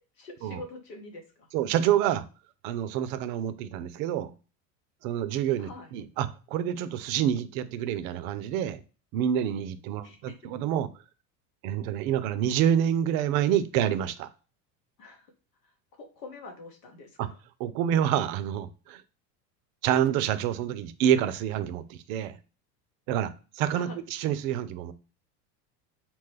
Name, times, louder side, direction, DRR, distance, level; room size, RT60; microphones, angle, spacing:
voice 1, 0.2-1.5 5.6-5.9 10.0-10.4 15.0-15.3 16.0-17.3 23.7-24.0, left 3 dB, 80° left, 3 dB, 1.1 m, -45 dB
voice 2, 1.5-2.2 2.6-4.3 5.0-8.8 9.1-10.9 11.6-14.3 17.2-17.3 17.6-19.0 19.8-22.4 23.1-24.9, right 10 dB, 60° right, 13 dB, 0.5 m, -27 dB
2.9 x 2.2 x 3.3 m, 0.34 s
hypercardioid pair, 90°, 49 cm